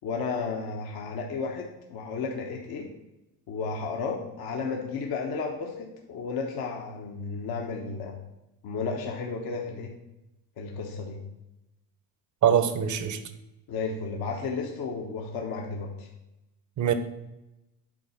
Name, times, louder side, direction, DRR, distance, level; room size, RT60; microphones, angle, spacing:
voice 1, 0.0-2.9 3.5-8.2 8.6-9.9 10.6-11.2 13.7-16.1, left 4 dB, 50° left, 1.2 m, -33 dB
voice 2, 12.4-13.2 16.8-16.9, right 9 dB, 40° right, 0.9 m, -23 dB
7.6 x 4.0 x 5.6 m
supercardioid pair, 90°, 46 cm